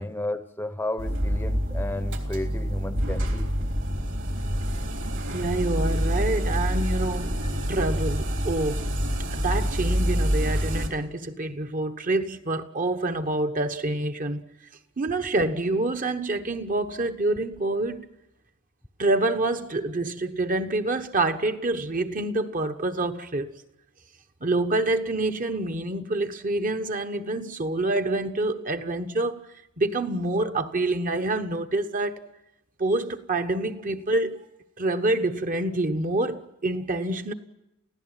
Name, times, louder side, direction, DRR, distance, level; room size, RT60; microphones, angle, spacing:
voice 1, 0.0-3.5, left 1 dB, 10° left, 0.8 m, -32 dB
sound 1, 1.0-10.9, equal, 60° right, 3.4 m, -27 dB
voice 2, 5.3-7.4 7.7-8.9 9.3-14.4 15.0-18.1 19.0-23.5 24.4-29.4 29.8-32.2 32.8-34.4 34.8-37.3, right 2 dB, 40° right, 1.2 m, -27 dB
29.0 x 16.0 x 9.1 m
head